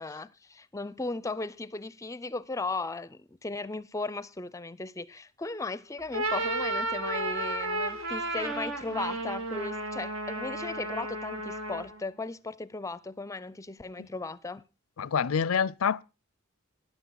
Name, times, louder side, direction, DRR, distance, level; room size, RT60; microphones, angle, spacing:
voice 1, 0.0-14.7, left 3 dB, 15° left, 0.5 m, -36 dB
sound 1, 6.0-12.0, right 2 dB, 75° right, 2.3 m, -33 dB
voice 2, 15.0-16.0, left 7 dB, 85° left, 0.5 m, -27 dB
13.0 x 9.9 x 3.9 m
head